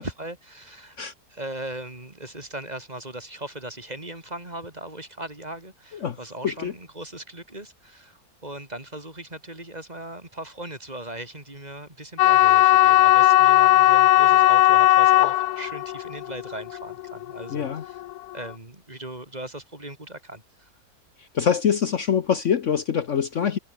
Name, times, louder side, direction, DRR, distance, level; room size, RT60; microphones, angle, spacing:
voice 1, 0.0-1.0 1.3-18.0 18.3-20.7, right 1 dB, 25° right, 4.0 m, -38 dB
sound 1, 12.2-18.3, left 14 dB, 90° left, 1.2 m, -17 dB
voice 2, 17.5-17.8 21.2-23.6, left 7 dB, 55° left, 1.2 m, -24 dB
omnidirectional pair, 1.6 m